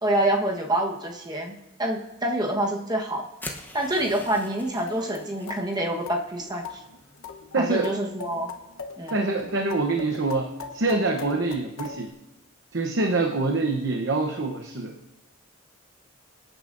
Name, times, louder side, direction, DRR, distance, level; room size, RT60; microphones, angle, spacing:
voice 1, 0.0-3.3 3.7-6.6 7.6-8.5 9.0-9.2, right 1 dB, 20° right, 1 dB, 1.2 m, -27 dB
sound 1, 3.4-5.6, left 1 dB, 10° left, 0.9 m, -41 dB
sound 2, 4.6-12.1, left 4 dB, 80° left, 1.1 m, -40 dB
voice 2, 7.5-7.9 9.1-12.1 12.7-14.9, right 3 dB, 60° right, 3 dB, 0.9 m, -25 dB
24.0 x 8.9 x 2.6 m, 0.98 s
head